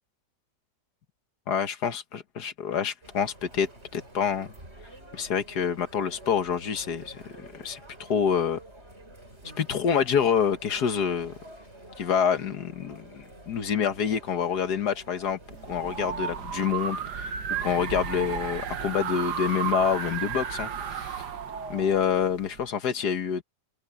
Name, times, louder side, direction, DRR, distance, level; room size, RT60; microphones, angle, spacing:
voice 1, 1.5-4.5 5.1-8.6 9.6-11.3 12.0-15.4 15.7-17.3 17.6-21.3 21.7-23.4, left 7 dB, 70° left, 1.9 m, -27 dB
Chatter, 3.0-17.3, right 1 dB, 40° right, 7.7 m, -49 dB
sound 1, 15.5-22.6, right 8 dB, 70° right, 1.9 m, -33 dB
omnidirectional pair, 1.8 m